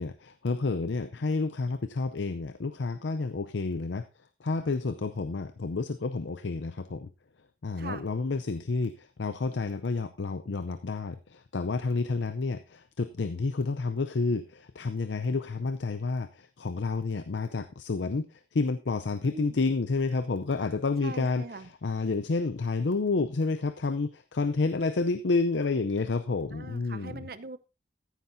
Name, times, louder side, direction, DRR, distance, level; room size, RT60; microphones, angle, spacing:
voice 1, 0.0-7.1 7.6-27.3, left 3 dB, 80° left, 11 dB, 0.6 m, -30 dB
voice 2, 7.8-8.1 19.2-19.7 21.0-21.7 26.5-27.6, right 3 dB, 55° right, 13 dB, 0.7 m, -41 dB
14.5 x 9.9 x 2.7 m, 0.27 s
head